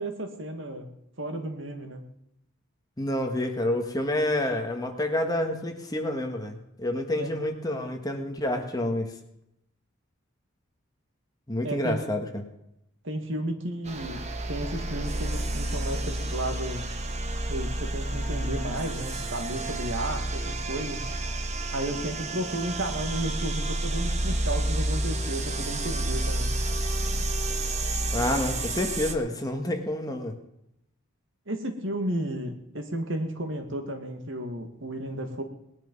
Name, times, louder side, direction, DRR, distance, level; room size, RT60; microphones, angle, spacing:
voice 1, 0.0-2.1 7.2-7.3 11.6-12.0 13.0-16.9 17.5-21.0 21.7-26.6 31.5-35.4, right 1 dB, 60° right, 5 dB, 2.1 m, -33 dB
voice 2, 3.0-9.1 11.5-12.4 28.1-30.3, left 1 dB, 15° left, 3 dB, 1.7 m, -28 dB
sound 1, 13.9-29.1, right 1 dB, 30° right, 1.3 m, -30 dB
19.5 x 10.5 x 5.5 m, 0.81 s
head